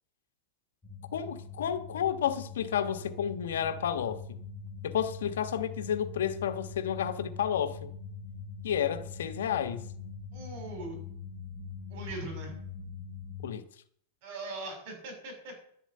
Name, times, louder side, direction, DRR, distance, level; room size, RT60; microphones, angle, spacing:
sound 1, 0.8-13.5, left 4 dB, 15° left, 1.6 m, -43 dB
voice 1, 1.1-4.4 4.8-7.9 8.6-9.9 13.4-13.7, left 9 dB, 90° left, 1.2 m, -31 dB
voice 2, 10.3-11.0 11.9-12.6 14.2-15.7, right 2 dB, 50° right, 6.3 m, -40 dB
12.0 x 7.3 x 8.8 m
supercardioid pair, 155°, 0 cm